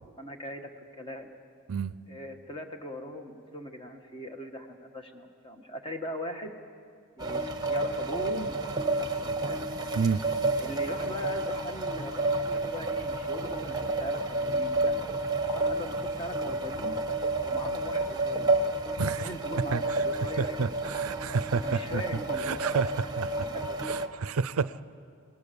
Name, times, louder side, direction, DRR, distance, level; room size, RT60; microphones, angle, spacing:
voice 1, 0.2-0.7 1.0-1.3 2.1-6.5 7.2-8.6 8.9-9.7 10.6-14.9 15.4-17.0 17.4-18.7 19.1-20.7 21.6-22.6 23.3-23.8, equal, 25° left, 4 dB, 1.5 m, -40 dB
sound 1, 7.2-24.1, right 2 dB, 20° right, 1.2 m, -30 dB
voice 2, 19.0-19.3 19.6-20.0 20.4-22.0 22.3-23.5 23.8-24.8, right 5 dB, 70° right, 16 dB, 0.5 m, -30 dB
26.5 x 19.0 x 7.0 m, 2.2 s
head